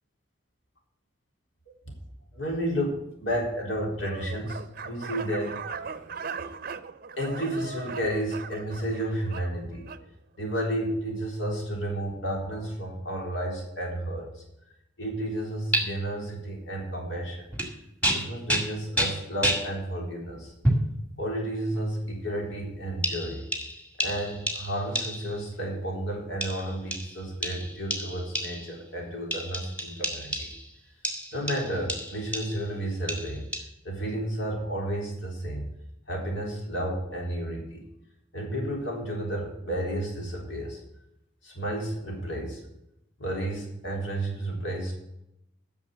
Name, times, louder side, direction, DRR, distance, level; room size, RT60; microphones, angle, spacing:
voice 1, 2.3-6.1 6.4-6.5 7.2-9.9 10.4-14.4 15.0-17.5 18.1-20.5 21.2-23.4 24.0-30.5 31.3-33.5 33.8-35.7 36.1-37.9 38.3-40.8 41.4-42.6 43.2-44.9, right 1 dB, 75° left, 0 dB, 3.8 m, -32 dB
sound 1, 4.0-10.1, right 5 dB, 50° right, 0.6 m, -39 dB
sound 2, 15.7-15.8 17.5-17.7 18.0-19.7 20.6-20.9 21.7-21.9 23.0-25.4 26.4-28.8 29.3-30.7 31.0-32.7 33.1-33.6, equal, 5° left, 1.9 m, -30 dB
10.0 x 6.6 x 8.3 m, 0.83 s
head